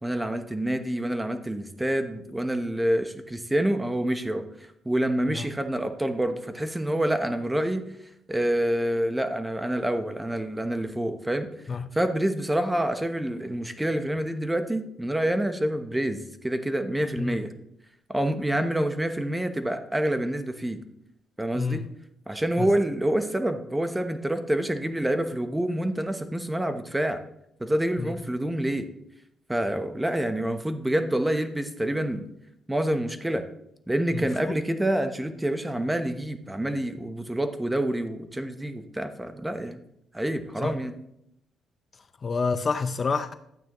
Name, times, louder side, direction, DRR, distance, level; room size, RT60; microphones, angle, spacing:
voice 1, 0.0-4.4 4.8-7.8 8.3-11.5 11.9-17.5 18.1-20.8 21.4-21.8 22.3-27.2 27.6-28.9 29.5-32.3 32.7-33.5 33.9-39.8 40.1-41.0, right 1 dB, 10° right, 8 dB, 0.9 m, -27 dB
voice 2, 34.1-34.6 40.6-40.7 42.2-43.3, left 4 dB, 40° left, 11 dB, 0.5 m, -28 dB
12.0 x 9.0 x 3.1 m, 0.76 s
cardioid pair, 90°, 0 cm